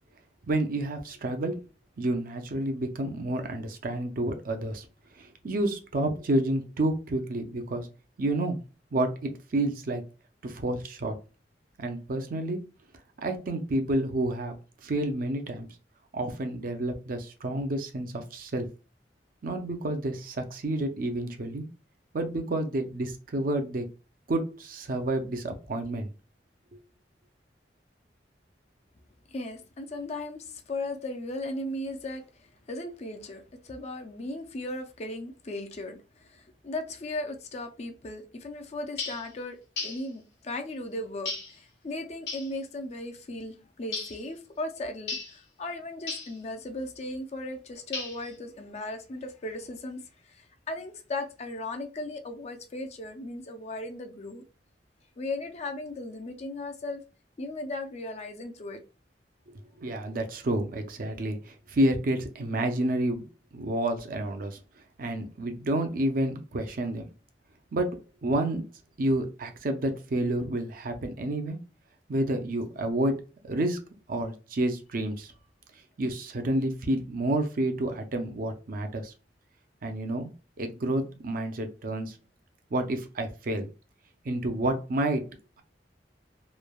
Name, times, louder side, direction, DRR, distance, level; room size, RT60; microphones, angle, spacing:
voice 1, 0.5-1.6 2.0-4.9 5.2-7.9 8.2-8.6 8.9-10.0 10.4-11.2 11.8-12.6 13.2-14.6 14.8-15.7 16.1-18.7 19.4-21.6 22.1-23.9 24.3-26.1 59.5-63.2 63.5-64.6 65.0-67.1 67.7-68.6 69.0-71.6 72.1-73.2 73.4-73.8 74.1-75.3 76.0-79.1 79.8-80.3 80.6-82.2 82.7-83.7 84.3-85.3, right 1 dB, 50° right, 0.5 m, -29 dB
voice 2, 29.3-54.4 55.2-57.0 57.4-58.8, left 2 dB, 40° left, 0.4 m, -37 dB
sound 1, 39.0-39.3 39.8-40.1 41.3-41.6 42.3-42.5 43.9-44.2 45.1-45.4 46.1-46.4 47.9-48.3, left 4 dB, 70° left, 1.1 m, -35 dB
3.1 x 2.2 x 2.2 m
head